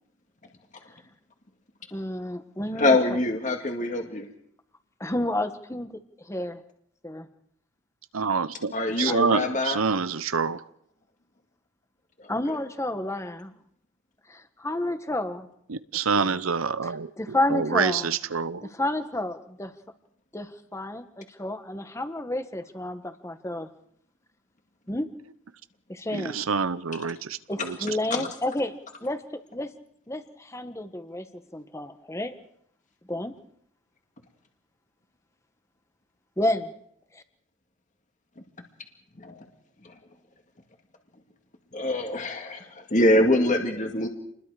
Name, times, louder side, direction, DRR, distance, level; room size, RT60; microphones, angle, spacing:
voice 1, 1.9-3.0 5.0-6.6 7.0-7.3 9.1-9.2 12.3-13.5 14.3-15.5 16.1-16.4 16.8-16.9 17.2-18.1 18.7-19.7 20.3-23.7 24.9-25.1 25.9-26.4 27.5-28.7 29.0-29.2 29.5-29.7 30.1-31.3 31.5-32.3 33.1-33.3 36.4-36.7 37.1-37.2, left 1 dB, 15° left, 9 dB, 1.4 m, -30 dB
voice 2, 2.8-4.3 8.7-9.8 12.2-12.3 28.1-28.2 39.2-39.4 41.7-44.1, left 1 dB, 35° left, 4 dB, 2.1 m, -24 dB
voice 3, 8.1-10.6 15.7-18.7 26.1-28.3, right 5 dB, 90° right, 14 dB, 0.8 m, -27 dB
28.0 x 21.0 x 5.0 m, 0.71 s
head